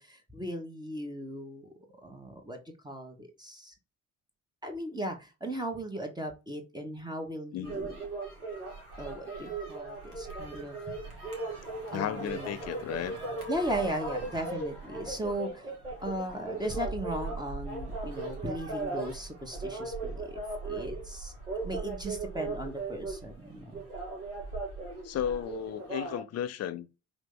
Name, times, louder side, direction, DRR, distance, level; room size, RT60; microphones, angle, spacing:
voice 1, 0.0-1.7 2.0-2.6 2.8-3.7 4.6-8.0 9.0-11.0 11.9-12.5 13.5-15.7 16.0-20.4 20.7-21.3 21.6-23.8, right 1 dB, 10° right, 1.1 m, -37 dB
voice 2, 7.5-8.0 11.9-13.2 25.0-26.9, left 10 dB, 35° left, 0.6 m, -34 dB
sound 1, 7.6-26.2, right 3 dB, 90° right, 1.1 m, -38 dB
5.0 x 2.8 x 3.8 m
figure-of-eight pair, 45°, 43 cm